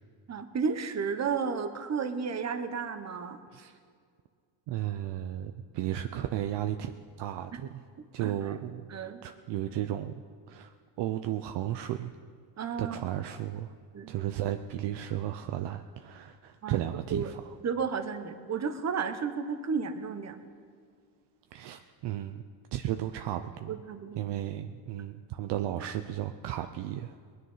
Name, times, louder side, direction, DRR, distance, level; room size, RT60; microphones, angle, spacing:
voice 1, 0.3-3.4 7.5-7.6 8.0-8.5 8.9-9.2 12.6-13.0 13.9-14.1 16.6-16.8 17.1-17.3 17.6-20.4 23.7-24.3, right 5 dB, 35° right, 8 dB, 1.2 m, -33 dB
voice 2, 4.7-7.8 8.1-8.9 9.2-10.1 10.5-12.1 12.8-13.7 14.1-17.5 21.5-22.4 22.7-23.7 24.2-27.2, right 12 dB, 60° right, 7 dB, 0.7 m, -34 dB
20.0 x 9.5 x 5.7 m, 2.1 s
cardioid pair, 110°, 47 cm